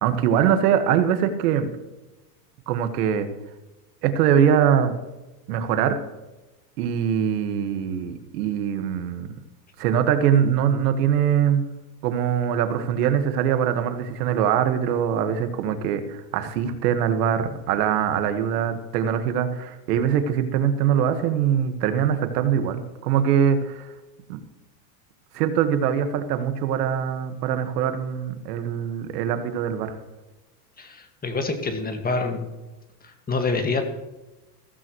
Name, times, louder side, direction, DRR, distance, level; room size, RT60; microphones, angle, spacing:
voice 1, 0.0-1.7 2.7-3.3 4.0-4.9 5.5-6.0 6.8-9.3 9.8-11.6 12.0-23.9 24.3-24.4 25.3-30.0, right 8 dB, 75° right, 8 dB, 1.7 m, -22 dB
voice 2, 30.8-32.5 33.3-33.8, left 3 dB, 20° left, 5 dB, 1.9 m, -26 dB
15.5 x 14.5 x 3.1 m, 1.0 s
supercardioid pair, 120°, 47 cm